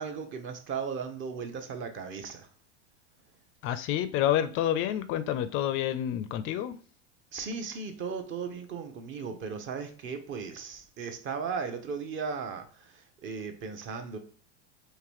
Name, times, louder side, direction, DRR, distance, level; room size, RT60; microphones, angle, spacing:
voice 1, 0.0-2.5 7.3-14.2, right 5 dB, 35° right, 0.7 m, -36 dB
voice 2, 3.6-6.8, left 11 dB, 40° left, 0.4 m, -28 dB
3.9 x 2.6 x 3.0 m
hypercardioid pair, 100°, 35 cm